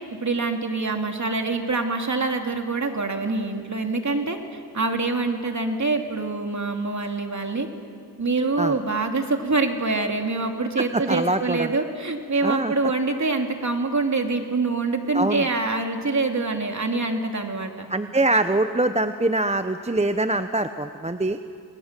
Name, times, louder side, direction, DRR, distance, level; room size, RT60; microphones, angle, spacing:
voice 1, 0.2-4.4 4.7-7.7 8.2-17.9, right 3 dB, 40° right, 4 dB, 2.9 m, -25 dB
voice 2, 10.8-11.7 12.4-12.7 15.1-15.5 17.9-21.4, right 2 dB, 15° right, 9 dB, 0.9 m, -23 dB
29.0 x 21.0 x 7.6 m, 2.2 s
cardioid pair, 60°, 42 cm